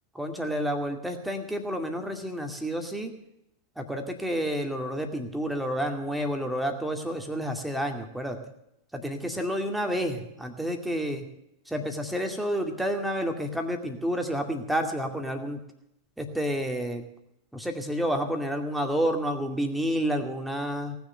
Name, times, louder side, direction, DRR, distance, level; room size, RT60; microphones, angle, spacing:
voice 1, 0.1-3.1 3.8-8.4 8.9-11.2 11.7-15.6 16.2-17.0 17.5-21.0, equal, 5° right, 4 dB, 2.3 m, -30 dB
18.5 x 7.0 x 9.0 m, 0.81 s
figure-of-eight pair, 90°, 0 cm